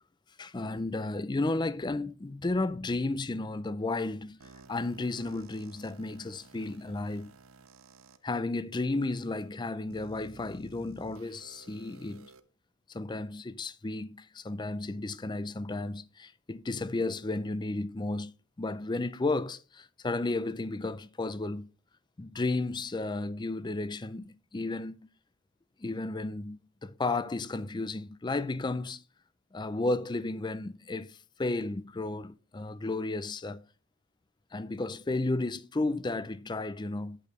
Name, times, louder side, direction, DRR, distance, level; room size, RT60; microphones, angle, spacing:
voice 1, 0.4-7.3 8.2-12.3 12.9-18.3 18.6-21.7 22.2-25.1 25.8-29.0 29.5-33.7 34.5-37.2, left 2 dB, 20° left, 0.4 m, -33 dB
sound 1, 4.4-8.2 8.9-9.0 9.9-12.4, right 3 dB, 75° right, 0.7 m, -54 dB
8.8 x 8.4 x 3.1 m
head